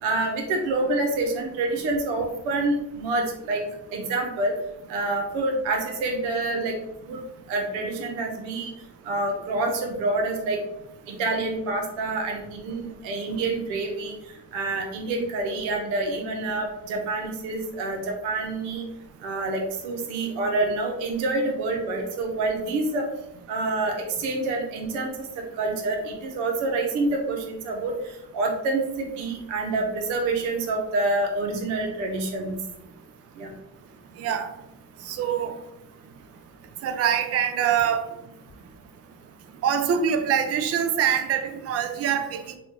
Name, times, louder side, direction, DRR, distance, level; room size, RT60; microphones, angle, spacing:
voice 1, 0.0-3.6 3.9-4.5 4.9-6.7 7.0-7.2 7.5-8.7 9.0-10.6 11.1-14.1 14.5-18.8 19.2-23.1 23.5-27.9 28.3-32.6 33.4-33.5, right 2 dB, 90° right, 2 dB, 0.7 m, -27 dB
voice 2, 35.1-35.5 36.8-38.0 39.6-42.6, right 8 dB, 35° right, 6 dB, 0.4 m, -24 dB
3.0 x 2.3 x 3.1 m, 0.86 s
supercardioid pair, 60°, 45 cm